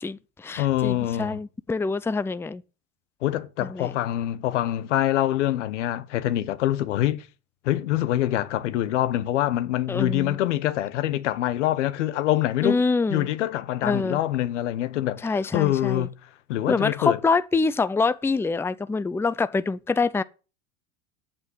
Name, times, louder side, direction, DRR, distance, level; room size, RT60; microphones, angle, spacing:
voice 1, 0.0-2.6 3.6-3.9 9.9-10.4 12.6-13.3 13.8-14.2 15.2-16.1 16.7-20.2, left 4 dB, 5° left, 0.5 m, -25 dB
voice 2, 0.6-1.4 3.2-7.2 7.6-12.8 13.1-16.1 16.5-17.2, left 13 dB, 85° left, 1.1 m, -25 dB
8.9 x 7.4 x 7.9 m
supercardioid pair, 95°, 35 cm